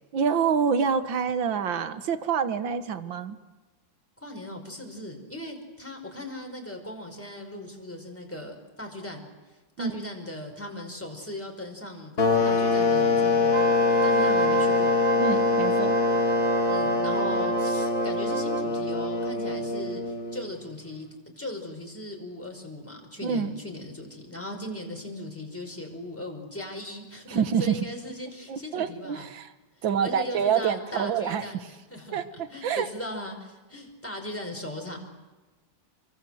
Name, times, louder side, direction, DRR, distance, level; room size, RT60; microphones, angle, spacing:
voice 1, 0.1-3.4 9.8-10.1 15.2-16.0 23.2-23.6 27.3-27.8 28.5-29.5 29.8-31.4 32.1-32.9, right 7 dB, 75° right, 11 dB, 2.1 m, -27 dB
voice 2, 4.2-9.3 9.8-12.1 12.4-13.6 14.0-15.0 16.7-21.1 21.4-29.3 30.0-32.2 32.5-35.0, left 1 dB, 5° left, 2 dB, 5.4 m, -38 dB
sound 1, 12.2-20.6, left 3 dB, 45° left, 2.9 m, -24 dB
Wind instrument woodwind instrument, 13.4-18.7, right 5 dB, 45° right, 1.1 m, -30 dB
29.5 x 23.5 x 7.9 m, 1.2 s
omnidirectional pair, 2.1 m